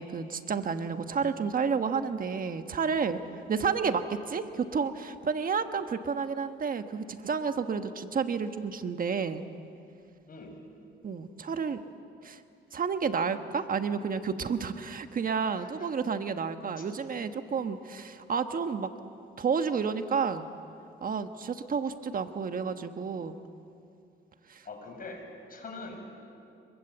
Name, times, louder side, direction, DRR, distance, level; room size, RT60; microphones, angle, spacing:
voice 1, 0.0-3.2 3.5-9.4 11.0-11.8 12.2-12.4 12.7-18.9 19.4-20.5 21.0-23.4 24.5-24.6, right 6 dB, 45° right, 8 dB, 1.3 m, -30 dB
voice 2, 24.6-25.2 25.5-26.0, left 3 dB, 45° left, 3 dB, 6.6 m, -42 dB
25.5 x 23.0 x 8.1 m, 2.5 s
cardioid pair, 90°, 20 cm